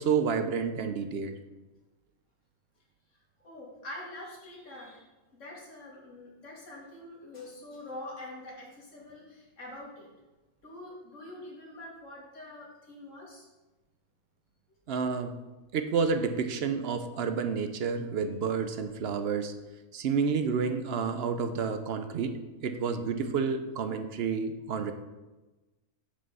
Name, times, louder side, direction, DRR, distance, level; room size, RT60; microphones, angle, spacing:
voice 1, 0.0-1.3 14.9-15.3 15.7-19.5 19.9-24.9, right 5 dB, 60° right, 8 dB, 0.7 m, -30 dB
voice 2, 3.4-5.0 5.3-10.1 10.6-13.5, left 1 dB, 60° left, -3 dB, 2.4 m, -45 dB
6.8 x 5.4 x 5.4 m, 1.1 s
omnidirectional pair, 1.5 m